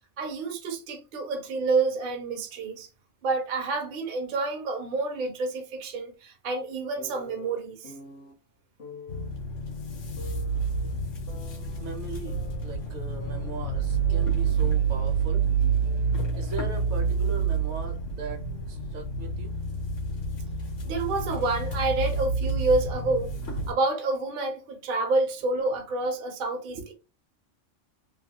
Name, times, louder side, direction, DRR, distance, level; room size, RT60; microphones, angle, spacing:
voice 1, 0.2-2.9 3.2-7.9 20.8-26.9, right 3 dB, 50° right, 0.7 m, -28 dB
sound 1, 7.0-8.3 8.8-9.3 10.2-11.8 12.3-13.8 14.1-16.2 16.5-18.1, left 2 dB, 60° left, 0.9 m, -48 dB
sound 2, 9.1-23.7, right 5 dB, 80° left, 1.2 m, -28 dB
voice 2, 11.8-16.1 16.3-19.5 26.7-26.9, right 4 dB, 70° right, 1.1 m, -39 dB
3.0 x 2.3 x 2.8 m
omnidirectional pair, 1.3 m